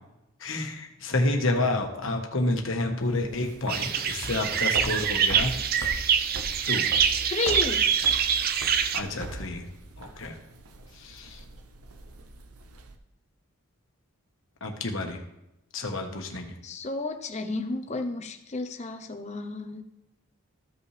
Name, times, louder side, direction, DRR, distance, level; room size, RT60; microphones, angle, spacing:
voice 1, 0.4-5.5 6.7-6.9 8.9-9.7 10.0-10.4 10.9-11.4 14.6-15.2 15.7-16.6, left 2 dB, 60° left, 3 dB, 1.3 m, -29 dB
sound 1, 3.0-13.0, right 2 dB, 85° right, 0.9 m, -40 dB
sound 2, 3.7-9.0, right 7 dB, 40° right, 0.5 m, -25 dB
voice 2, 7.3-7.9 16.6-19.8, left 3 dB, 30° left, 7 dB, 0.7 m, -32 dB
14.0 x 5.5 x 3.3 m, 0.88 s
head